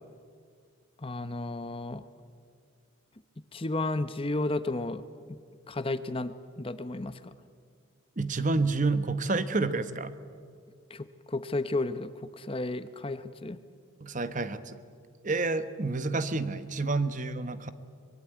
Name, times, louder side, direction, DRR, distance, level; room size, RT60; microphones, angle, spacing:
voice 1, 1.0-2.0 3.5-5.0 5.3-5.4 5.7-7.3 10.9-12.1 12.4-13.6, left 2 dB, 25° left, 12 dB, 0.8 m, -33 dB
voice 2, 8.2-10.2 14.0-14.8 15.2-17.7, right 3 dB, 35° right, 12 dB, 1.1 m, -29 dB
24.5 x 21.5 x 9.2 m, 2.1 s
head